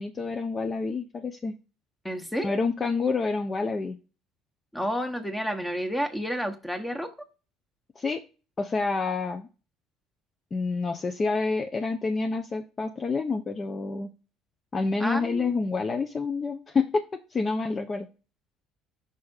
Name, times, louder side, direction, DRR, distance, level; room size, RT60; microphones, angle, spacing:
voice 1, 0.0-1.5 2.4-4.0 8.0-8.2 8.6-9.5 10.5-14.1 14.7-17.0 17.3-18.1, left 4 dB, 30° left, 6 dB, 0.6 m, -28 dB
voice 2, 2.0-2.5 4.7-7.1 15.0-15.5, equal, 5° left, 7 dB, 1.2 m, -30 dB
5.5 x 3.3 x 5.4 m, 0.35 s
figure-of-eight pair, 60°, 0 cm